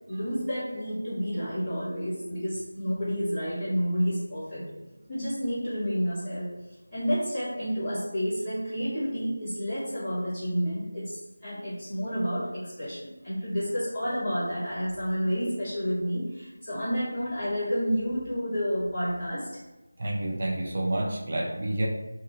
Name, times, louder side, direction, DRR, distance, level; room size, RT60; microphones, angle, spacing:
voice 1, 0.1-4.7 5.1-6.5 6.9-19.5, equal, ahead, -21 dB, 1.1 m, -30 dB
voice 2, 20.0-21.9, right 1 dB, 40° right, -1 dB, 0.5 m, -29 dB
2.6 x 2.5 x 2.6 m, 1.1 s
figure-of-eight pair, 170°, 0 cm